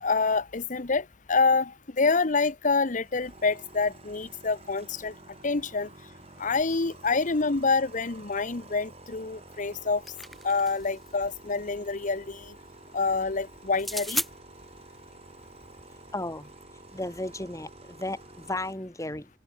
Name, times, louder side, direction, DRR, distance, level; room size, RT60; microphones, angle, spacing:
voice 1, 0.0-5.1 5.4-5.9 6.4-10.0 10.4-12.5 12.9-14.2, left 4 dB, 45° left, 1.0 m, -27 dB
sound 1, 3.0-18.7, right 2 dB, 35° right, 7.7 m, -50 dB
sound 2, 9.7-11.0 13.7-14.3, equal, ahead, 3.7 m, -34 dB
voice 2, 16.1-16.5 16.9-19.3, left 2 dB, 20° left, 3.8 m, -34 dB
open air
head